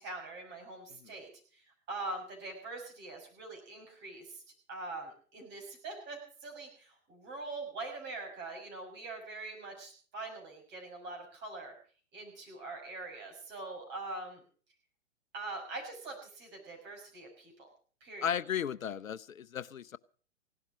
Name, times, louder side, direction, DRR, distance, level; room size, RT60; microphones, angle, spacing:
voice 1, 0.0-4.4 4.7-11.7 12.1-14.4 15.3-17.7 18.0-18.4, right 2 dB, 25° right, 6.1 m, -43 dB
voice 2, 18.2-20.0, left 8 dB, 90° left, 0.7 m, -35 dB
17.0 x 12.0 x 6.1 m
hypercardioid pair, 125°, 39 cm